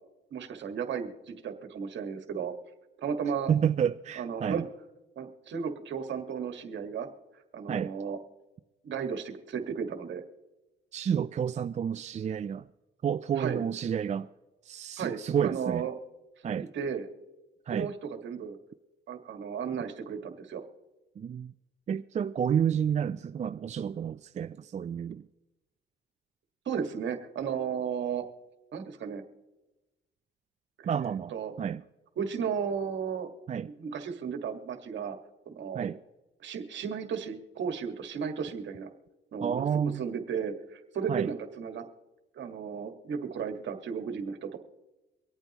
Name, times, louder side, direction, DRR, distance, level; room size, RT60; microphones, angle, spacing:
voice 1, 0.3-2.5 3.0-3.5 4.2-4.7 5.2-7.1 7.5-8.2 8.8-10.2 13.4-13.6 15.0-16.0 16.6-17.1 17.7-18.6 19.1-20.6 26.7-28.3 28.7-29.2 30.8-30.9 31.3-31.5 32.2-33.3 33.8-35.2 35.5-35.9 36.4-38.9 39.3-41.8 42.4-44.6, right 6 dB, 65° right, 1.7 m, -34 dB
voice 2, 3.5-4.7 7.7-7.9 10.9-12.7 13.0-14.3 14.6-15.9 16.4-16.7 17.7-17.9 21.2-21.5 21.9-25.3 30.8-31.8 33.5-33.7 35.7-36.0 39.4-40.0 41.1-41.3, right 8 dB, 35° right, 0.4 m, -30 dB
24.5 x 8.8 x 3.0 m
cardioid pair, 90°, 20 cm